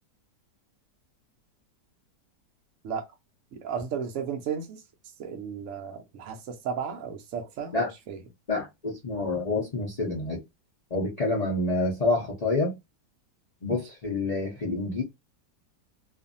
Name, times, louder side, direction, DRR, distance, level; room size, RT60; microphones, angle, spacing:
voice 1, 3.5-4.8 5.2-7.7 8.1-8.2, right 7 dB, 75° right, 0.7 m, -34 dB
voice 2, 8.5-10.4 10.9-12.8 13.6-15.0, left 2 dB, 75° left, 0.3 m, -27 dB
2.6 x 2.4 x 2.5 m
omnidirectional pair, 1.9 m